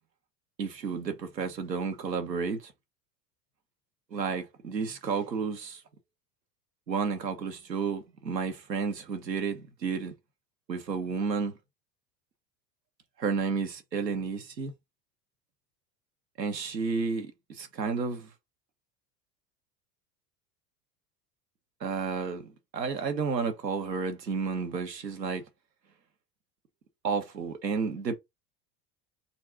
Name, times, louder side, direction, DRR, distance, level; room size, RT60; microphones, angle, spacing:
voice 1, 0.6-2.7 4.1-5.8 6.9-10.1 10.7-11.5 13.2-14.7 16.4-18.3 21.8-25.4 27.0-28.2, right 5 dB, 90° right, 1.2 m, -31 dB
4.1 x 2.6 x 4.4 m
hypercardioid pair, 75°, 48 cm